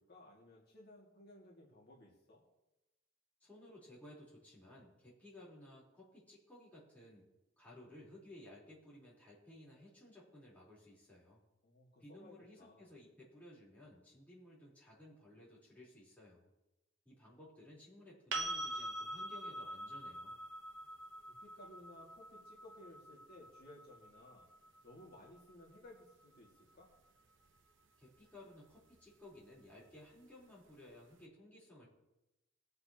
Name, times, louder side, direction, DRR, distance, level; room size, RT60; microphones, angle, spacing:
voice 1, 0.0-2.4 11.6-12.9 21.4-24.5 24.8-26.9, left 1 dB, 50° left, -3 dB, 2.0 m, -58 dB
voice 2, 3.4-7.3 7.6-11.4 12.0-16.5 17.1-20.4 28.0-31.9, left 1 dB, 10° left, -8 dB, 3.7 m, -57 dB
sound 1, 18.3-26.1 28.9-29.0, right 1 dB, 70° right, 1.0 m, -45 dB
20.5 x 7.8 x 2.9 m, 0.97 s
head